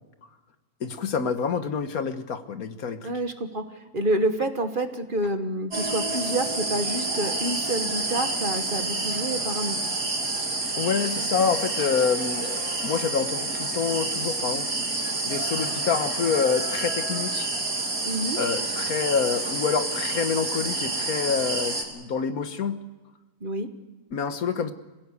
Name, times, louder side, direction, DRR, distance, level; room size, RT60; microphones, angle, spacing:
voice 1, 0.8-3.1 10.8-12.5 12.8-14.7 15.0-17.5 18.4-22.8 24.1-24.7, left 6 dB, 75° left, 10 dB, 1.6 m, -27 dB
voice 2, 3.0-3.6 3.9-9.8 18.0-18.4 23.4-23.7, right 1 dB, 35° right, 8 dB, 1.4 m, -28 dB
sound 1, 5.7-21.8, right 2 dB, 85° right, 3.5 m, -28 dB
26.5 x 16.5 x 8.2 m, 1.2 s
omnidirectional pair, 1.5 m